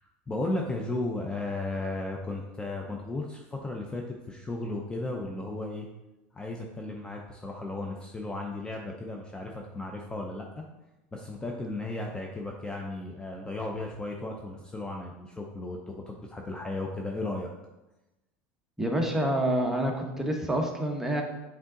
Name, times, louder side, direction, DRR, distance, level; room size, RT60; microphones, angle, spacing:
voice 1, 0.0-5.9 6.3-10.6 11.1-17.5, left 2 dB, 15° left, 1 dB, 0.6 m, -35 dB
voice 2, 18.8-21.2, right 1 dB, 5° right, 1 dB, 1.0 m, -27 dB
7.3 x 3.6 x 3.8 m, 1.0 s
supercardioid pair, 115°, 6 cm